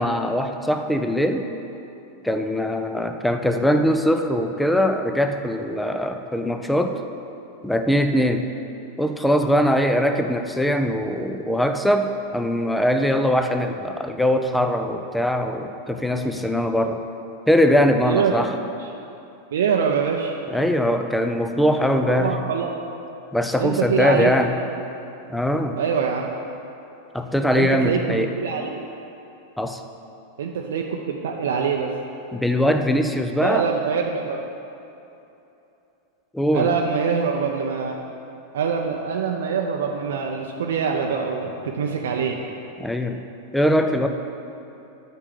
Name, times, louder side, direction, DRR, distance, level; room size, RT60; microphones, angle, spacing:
voice 1, 0.0-1.5 2.2-7.0 7.6-8.5 9.0-17.0 17.5-18.5 20.5-22.3 23.3-24.5 25.3-25.8 27.1-28.3 29.6-29.8 32.3-33.7 36.3-36.7 42.8-43.2 43.5-44.1, equal, 5° left, 6 dB, 0.6 m, -21 dB
voice 2, 18.0-18.4 19.5-20.3 22.0-22.8 23.6-24.4 25.8-26.4 27.5-28.8 30.4-31.9 33.4-34.4 36.5-38.0 38.5-42.4, right 6 dB, 60° right, 1 dB, 0.6 m, -24 dB
8.2 x 5.6 x 7.5 m, 2.8 s
figure-of-eight pair, 90°, 0 cm